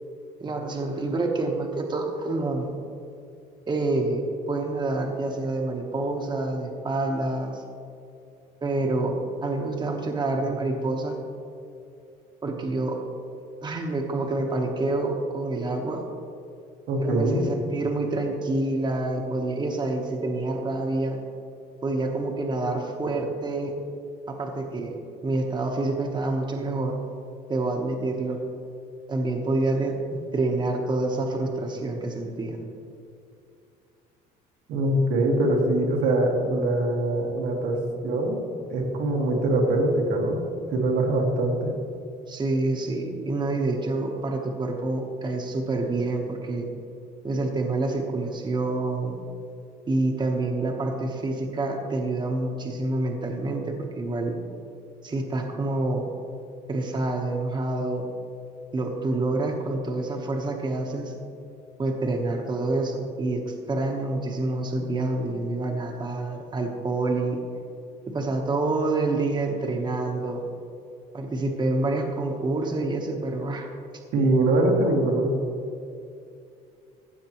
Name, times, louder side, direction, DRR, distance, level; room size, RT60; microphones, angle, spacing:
voice 1, 0.4-2.7 3.7-7.6 8.6-11.2 12.4-13.0 13.6-16.0 17.0-21.2 21.8-23.7 24.3-27.0 27.5-28.4 29.1-30.0 30.3-32.6 42.3-46.7 47.2-49.2 49.9-54.4 55.0-56.1 56.7-58.0 58.7-61.1 61.8-67.4 68.1-70.4 71.1-73.7, right 2 dB, 25° right, 1 dB, 1.1 m, -27 dB
voice 2, 16.9-17.4 34.7-37.8 38.0-38.4 38.7-40.4 40.7-41.7 74.1-75.3, right 2 dB, 85° right, -1 dB, 1.7 m, -23 dB
15.5 x 7.3 x 3.0 m, 2.5 s
cardioid pair, 110°, 17 cm